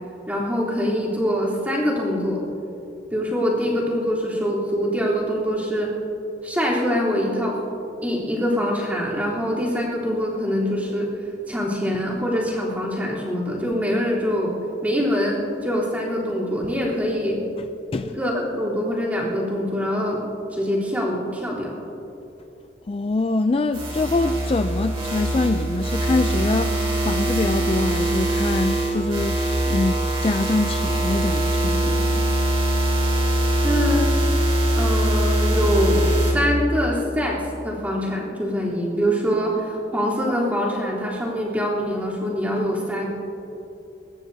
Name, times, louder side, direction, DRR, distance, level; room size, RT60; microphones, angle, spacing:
voice 1, 0.3-2.4 3.1-5.9 6.4-7.6 8.0-11.1 11.5-14.5 14.8-17.4 18.0-20.2 20.5-21.8 33.6-34.0 34.8-36.1 36.3-43.1, equal, 10° right, -7 dB, 3.6 m, -24 dB
voice 2, 22.9-32.3, left 2 dB, 30° left, 8 dB, 0.3 m, -24 dB
sound 1, 23.7-36.3, right 1 dB, 30° right, 2.8 m, -22 dB
22.5 x 20.0 x 2.8 m, 2.9 s
head